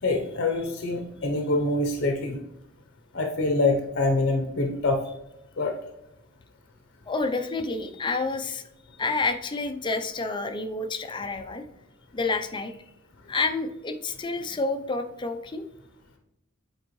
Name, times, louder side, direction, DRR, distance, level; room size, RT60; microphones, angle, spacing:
voice 1, 0.0-2.4 3.1-5.0 5.6-5.7, left 2 dB, 50° left, 4 dB, 0.7 m, -25 dB
voice 2, 7.1-8.6 9.0-11.6 12.1-12.7 13.3-15.6, left 3 dB, 20° left, 7 dB, 0.5 m, -29 dB
7.8 x 4.4 x 3.1 m, 0.89 s
head